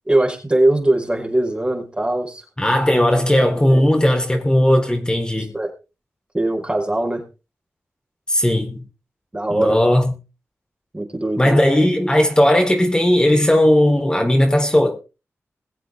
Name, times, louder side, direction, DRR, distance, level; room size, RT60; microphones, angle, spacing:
voice 1, 0.1-2.4 3.1-3.3 3.5-3.9 5.2-5.7 6.3-7.2 9.3-9.8 10.9-11.6, right 1 dB, 20° right, 5.2 m, -21 dB
voice 2, 2.6-5.5 8.3-8.8 9.5-10.1 11.4-15.0, left 1 dB, 15° left, 4.5 m, -16 dB
22.5 x 7.8 x 3.7 m
wide cardioid pair, 75°, 5 cm